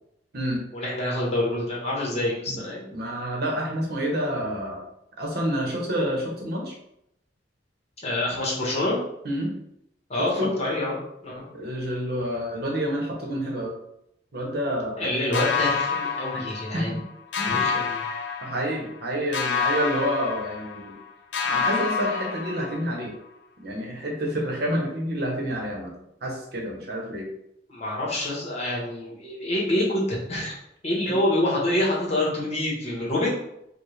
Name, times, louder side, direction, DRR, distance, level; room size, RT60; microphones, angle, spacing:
voice 1, 0.7-2.9 8.0-9.0 10.1-11.0 11.2-11.4 15.0-17.0 17.5-18.0 27.7-30.6 30.8-33.4, left 1 dB, 35° left, -4 dB, 1.3 m, -26 dB
voice 2, 2.9-4.8 5.2-6.7 9.2-9.5 10.2-10.5 11.5-13.7 14.3-15.1 16.7-16.8 17.4-17.8 18.4-21.0 21.4-23.1 23.6-25.9 26.2-27.3, equal, 60° right, -1 dB, 1.0 m, -28 dB
sound 1, 15.3-17.0 17.3-19.0 19.3-21.0 21.3-23.0, left 6 dB, 70° left, 0.5 m, -28 dB
4.6 x 2.3 x 3.2 m, 0.79 s
head